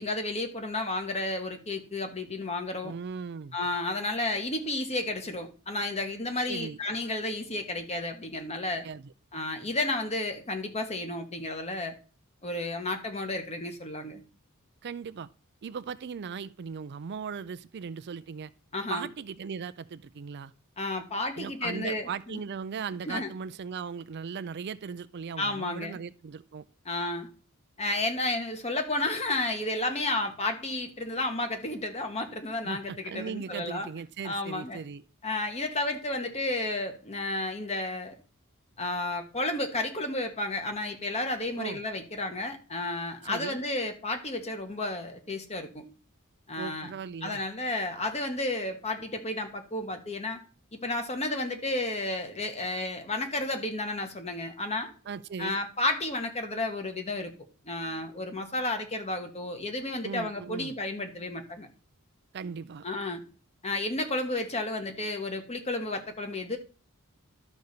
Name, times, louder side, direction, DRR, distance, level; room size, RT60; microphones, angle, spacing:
voice 1, 0.0-2.9 3.5-8.9 9.3-11.9 12.4-14.2 18.7-19.1 20.8-22.4 23.1-23.3 25.4-26.0 26.8-27.3 27.8-33.9 34.2-34.8 35.2-38.1 38.8-45.8 46.5-46.9 47.2-50.4 50.7-54.9 55.4-57.3 57.6-61.7 62.8-63.2 63.6-66.6, left 2 dB, 30° left, 1.4 m, -32 dB
voice 2, 2.8-3.5 6.5-6.8 8.8-9.1 14.8-15.3 15.6-18.5 18.9-20.5 21.4-26.6 32.6-35.0 41.6-41.8 43.2-43.6 46.6-47.4 55.1-55.6 60.0-60.7 62.3-62.8, right 6 dB, 50° right, 0.4 m, -38 dB
11.5 x 4.1 x 6.6 m
head